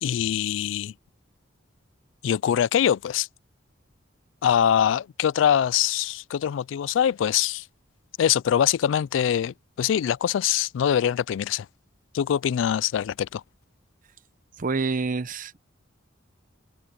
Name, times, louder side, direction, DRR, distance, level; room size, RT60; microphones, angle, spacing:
voice 1, 0.0-0.9 2.2-3.3 4.4-7.6 8.2-11.7 12.1-13.4, left 9 dB, 70° left, 0.3 m, -23 dB
voice 2, 14.6-15.6, right 4 dB, 45° right, 0.8 m, -27 dB
head